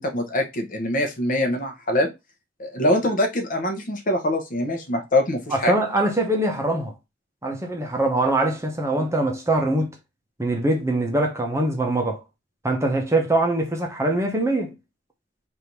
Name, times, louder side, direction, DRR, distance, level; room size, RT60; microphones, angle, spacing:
voice 1, 0.0-2.1 2.6-5.7, left 1 dB, 45° left, 0.9 m, -23 dB
voice 2, 5.5-6.9 7.4-9.9 10.4-12.2 12.6-14.7, right 1 dB, 15° right, 0.7 m, -23 dB
3.4 x 2.7 x 4.4 m
head